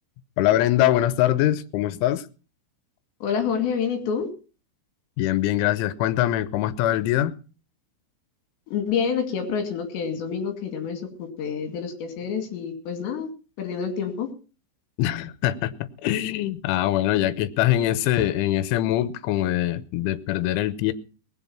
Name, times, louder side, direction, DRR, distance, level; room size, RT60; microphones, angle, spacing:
voice 1, 0.4-2.2 5.2-7.3 15.0-15.7 16.0-20.9, left 13 dB, 90° left, 14 dB, 3.3 m, -23 dB
voice 2, 3.2-4.3 8.7-13.3 13.6-14.3, left 6 dB, 70° left, 6 dB, 4.5 m, -28 dB
20.0 x 8.1 x 5.8 m, 0.37 s
omnidirectional pair, 5.4 m